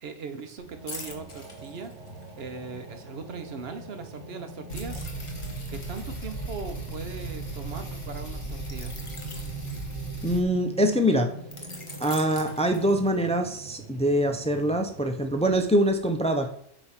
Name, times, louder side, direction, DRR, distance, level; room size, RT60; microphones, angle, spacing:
voice 1, 0.0-1.9 2.4-5.1 5.7-9.0, right 5 dB, 60° right, 8 dB, 1.0 m, -39 dB
sound 1, 0.6-15.6, right 1 dB, 80° right, 1.5 m, -44 dB
sound 2, 0.9-2.4 4.7-7.5 8.6-10.5 11.5-13.3 13.8-14.0, left 2 dB, 30° left, 1.0 m, -44 dB
sound 3, 4.7-10.4, right 2 dB, 60° left, 2.0 m, -36 dB
voice 2, 10.2-11.3 12.0-16.5, equal, 10° left, 5 dB, 0.3 m, -24 dB
8.0 x 3.0 x 5.7 m, 0.67 s
omnidirectional pair, 1.2 m